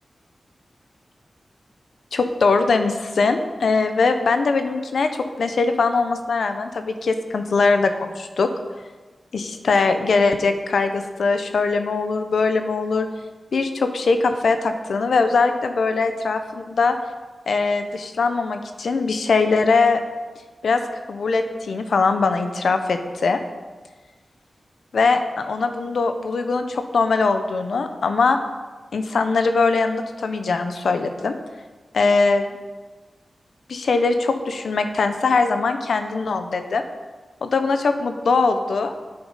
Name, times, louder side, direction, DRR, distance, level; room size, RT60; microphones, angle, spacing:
voice 1, 2.1-8.5 9.3-13.1 13.5-17.0 17.5-20.0 20.6-20.8 21.1-23.4 24.9-28.4 28.9-31.4 31.9-32.5 33.7-36.8 37.4-38.9, left 4 dB, 90° left, 7 dB, 1.0 m, -21 dB
9.8 x 8.9 x 5.7 m, 1.3 s
wide cardioid pair, 135°, 0 cm